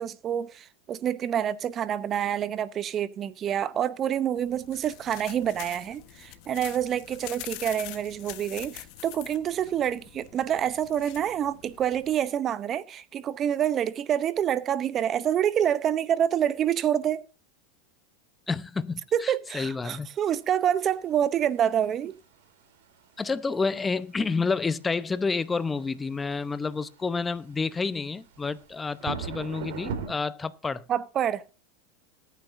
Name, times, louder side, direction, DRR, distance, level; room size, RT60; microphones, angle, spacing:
voice 1, 0.0-17.2 19.1-22.1 30.9-31.4, right 9 dB, 35° right, 0.7 m, -27 dB
sound 1, 4.4-12.3, left 16 dB, 60° left, 1.2 m, -44 dB
voice 2, 18.5-20.1 23.2-30.8, left 4 dB, 15° left, 0.8 m, -29 dB
sound 2, 20.3-30.1, right 6 dB, 70° right, 3.8 m, -42 dB
20.5 x 9.3 x 2.7 m
hypercardioid pair, 115°, 0 cm